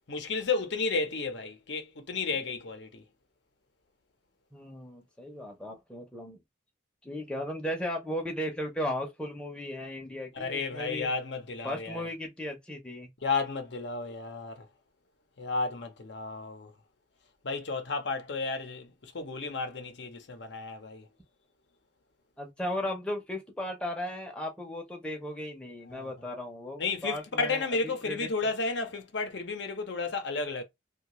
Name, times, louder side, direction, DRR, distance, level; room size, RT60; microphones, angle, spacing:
voice 1, 0.1-3.0 10.3-12.0 13.2-14.7 15.4-16.7 17.4-21.1 25.9-26.1 26.8-30.6, left 4 dB, 65° left, 0.7 m, -32 dB
voice 2, 4.5-6.4 7.0-11.1 11.6-13.1 22.4-27.6 28.1-28.5, left 1 dB, 5° left, 0.6 m, -36 dB
2.7 x 2.3 x 2.9 m
head